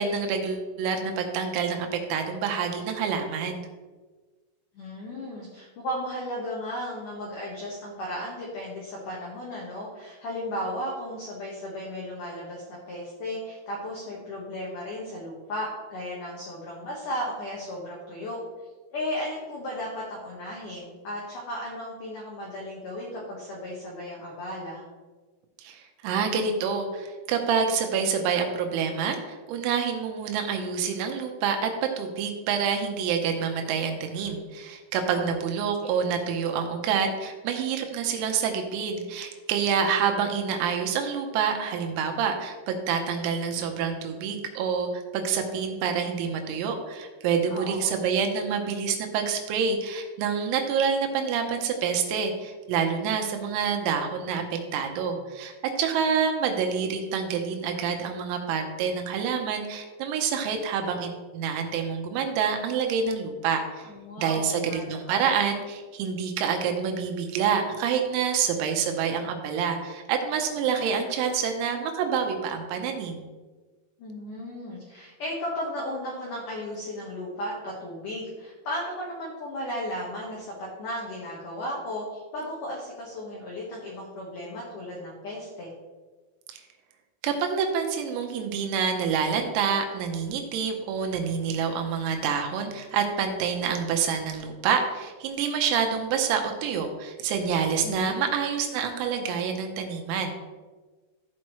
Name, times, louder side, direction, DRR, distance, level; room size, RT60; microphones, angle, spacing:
voice 1, 0.0-3.6 25.6-31.7 32.0-63.9 64.2-73.3 86.5-86.6 87.2-100.4, right 6 dB, 90° right, 3 dB, 3.8 m, -27 dB
voice 2, 4.7-18.4 18.9-24.8 35.1-35.3 35.8-35.9 47.5-48.0 63.8-65.3 74.0-85.7 97.8-98.2, left 1 dB, 75° left, -4 dB, 1.9 m, -35 dB
15.0 x 5.9 x 3.2 m, 1.3 s
omnidirectional pair, 6.0 m